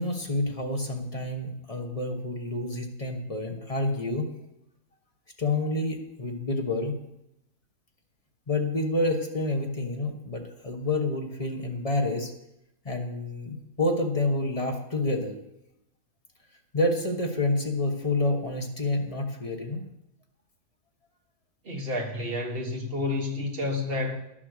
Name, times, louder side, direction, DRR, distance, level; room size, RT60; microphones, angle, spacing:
voice 1, 0.0-4.3 5.4-7.0 8.5-12.3 12.8-15.4 16.7-19.8, left 2 dB, 25° left, 3 dB, 1.2 m, -28 dB
voice 2, 21.6-24.2, left 2 dB, 40° right, 3 dB, 1.7 m, -30 dB
11.0 x 7.5 x 6.5 m, 0.85 s
omnidirectional pair, 1.5 m